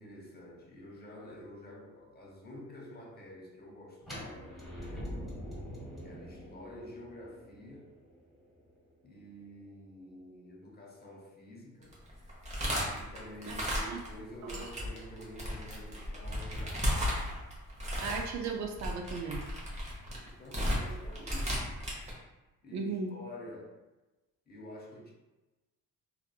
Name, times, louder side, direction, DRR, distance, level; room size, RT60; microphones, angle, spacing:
voice 1, 0.0-5.3 6.0-7.9 9.0-12.0 12.9-17.2 20.2-21.7 22.6-23.8 24.5-25.1, left 1 dB, 35° left, -2 dB, 0.7 m, -49 dB
sound 1, 4.0-9.9, equal, ahead, 1.3 m, -45 dB
sound 2, 11.8-14.2 14.5-22.1, equal, 25° right, 0.9 m, -34 dB
voice 2, 18.0-19.4 22.7-23.1, right 4 dB, 65° right, 2 dB, 0.5 m, -36 dB
2.7 x 2.4 x 2.3 m, 1.1 s
cardioid pair, 90°, 30 cm